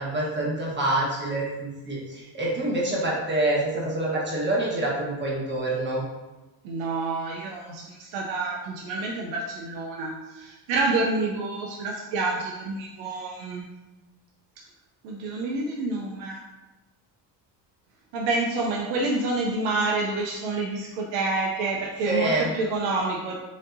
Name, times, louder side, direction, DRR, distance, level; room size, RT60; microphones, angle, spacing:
voice 1, 0.0-6.0 22.0-22.5, right 1 dB, 25° right, -4 dB, 1.2 m, -26 dB
voice 2, 6.6-13.6 15.0-16.4 18.1-23.3, right 3 dB, 85° right, -2 dB, 0.7 m, -28 dB
5.1 x 2.7 x 2.6 m, 1.1 s
cardioid pair, 115°, 45 cm